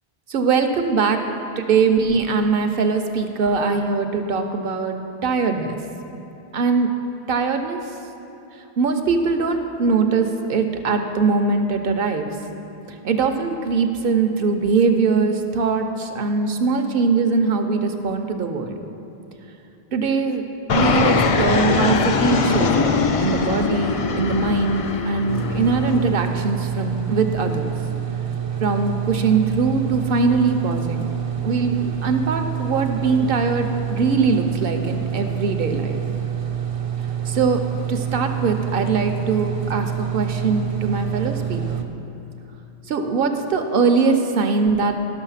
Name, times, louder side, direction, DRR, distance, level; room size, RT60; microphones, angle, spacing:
voice 1, 0.3-1.2 1.6-4.9 5.2-5.8 6.5-6.9 7.3-7.8 8.8-12.3 12.9-18.8 19.9-20.4 20.7-22.9 23.2-27.7 28.6-31.1 31.4-36.0 37.3-37.6 37.9-41.8 42.9-45.0, right 4 dB, 60° right, 6 dB, 0.9 m, -21 dB
Fixed-wing aircraft airplane, 20.7-26.1, left 4 dB, 55° left, 0.4 m, -21 dB
sound 1, 25.3-41.8, right 9 dB, 40° right, 0.5 m, -27 dB
11.5 x 6.5 x 5.6 m, 2.7 s
omnidirectional pair, 1.1 m